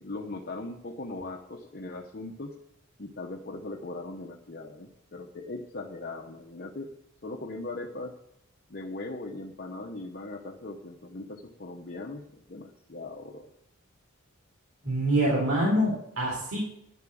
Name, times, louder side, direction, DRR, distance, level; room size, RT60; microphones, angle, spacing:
voice 1, 0.0-2.6 3.0-6.9 7.2-8.2 8.7-13.5, left 2 dB, 45° left, 2 dB, 0.9 m, -39 dB
voice 2, 14.8-16.7, right 1 dB, 80° right, -5 dB, 4.1 m, -25 dB
11.0 x 7.4 x 7.6 m, 0.76 s
head